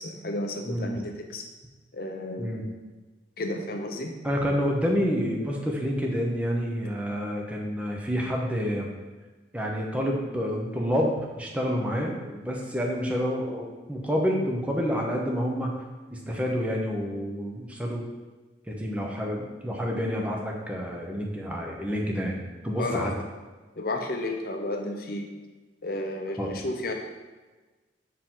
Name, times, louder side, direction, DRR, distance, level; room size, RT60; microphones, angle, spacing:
voice 1, 0.0-1.4 1.9-2.8 3.4-4.2 22.8-23.2 23.8-25.3 25.8-26.9, left 1 dB, 50° left, 3 dB, 0.7 m, -32 dB
voice 2, 0.7-1.0 2.4-2.6 4.2-8.9 9.5-15.7 16.1-18.0 18.7-23.1 26.4-26.5, equal, 5° right, -1 dB, 0.8 m, -28 dB
5.9 x 4.6 x 3.8 m, 1.2 s
head